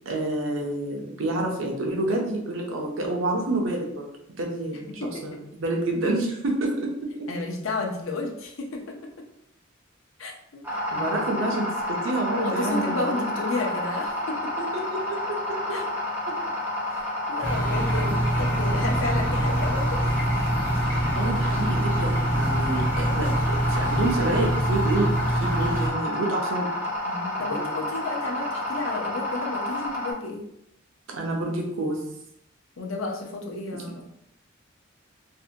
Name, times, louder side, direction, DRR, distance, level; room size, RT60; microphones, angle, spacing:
voice 1, 0.1-7.1 10.9-13.2 14.6-15.8 21.1-26.7 27.5-27.7 31.1-32.0 33.7-33.8, right 2 dB, 85° right, 1 dB, 0.6 m, -28 dB
voice 2, 7.3-9.0 10.2-11.6 12.3-14.5 15.7-15.9 16.9-20.0 27.1-30.5 32.8-34.0, left 3 dB, 90° left, 1 dB, 0.5 m, -32 dB
sound 1, 10.6-30.1, left 1 dB, 10° right, 0.6 m, -30 dB
sound 2, 17.4-25.9, right 1 dB, 10° left, 1.0 m, -25 dB
2.6 x 2.1 x 2.7 m, 0.75 s
head